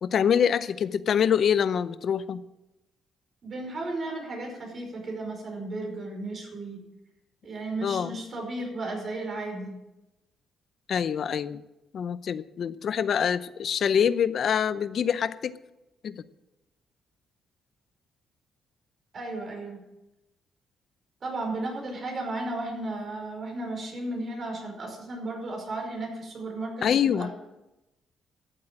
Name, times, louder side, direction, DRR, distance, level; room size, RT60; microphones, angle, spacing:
voice 1, 0.0-2.4 7.8-8.2 10.9-11.6 11.9-15.5 16.0-16.2 26.8-27.3, left 8 dB, 60° left, 14 dB, 0.6 m, -25 dB
voice 2, 3.4-6.8 7.4-9.8 19.1-19.8 21.2-27.3, right 2 dB, 45° right, 2 dB, 5.3 m, -34 dB
13.5 x 7.7 x 8.9 m, 0.97 s
cardioid pair, 90°, 0 cm